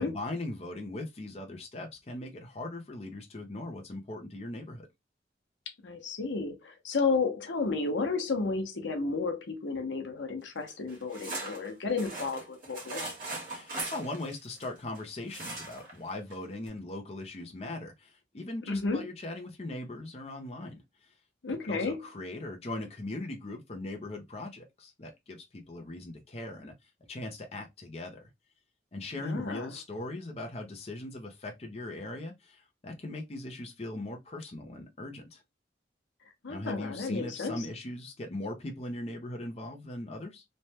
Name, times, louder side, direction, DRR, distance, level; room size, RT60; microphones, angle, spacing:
voice 1, 0.0-4.9 13.4-20.7 21.0-21.1 21.6-26.7 27.1-28.3 28.9-35.4 36.5-40.4, left 2 dB, 35° left, 0.6 m, -39 dB
voice 2, 5.8-13.1 18.7-19.0 21.4-22.0 29.2-29.7 36.4-37.7, left 4 dB, 90° left, 0.7 m, -32 dB
sound 1, 10.7-15.0 15.3-16.0 16.3-16.4 16.7-16.8, right 2 dB, 45° right, 1.4 m, -39 dB
3.2 x 2.2 x 2.7 m
head